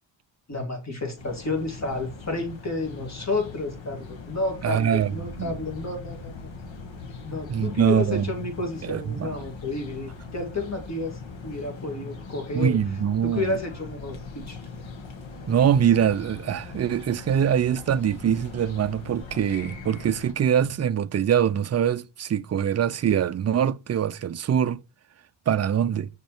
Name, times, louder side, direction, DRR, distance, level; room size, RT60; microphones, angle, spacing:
voice 1, 0.5-6.5 7.2-12.8 13.2-14.6, left 2 dB, 35° left, 2.6 m, -31 dB
sound 1, 1.2-20.3, left 4 dB, 70° left, 1.7 m, -41 dB
voice 2, 4.6-5.5 7.5-8.2 8.8-9.3 12.5-13.6 15.5-24.8 25.5-26.1, right 9 dB, 35° right, 0.4 m, -23 dB
sound 2, 5.2-17.7 18.0-18.1, left 2 dB, 85° left, 3.6 m, -48 dB
6.6 x 5.3 x 4.4 m
wide cardioid pair, 135°, 47 cm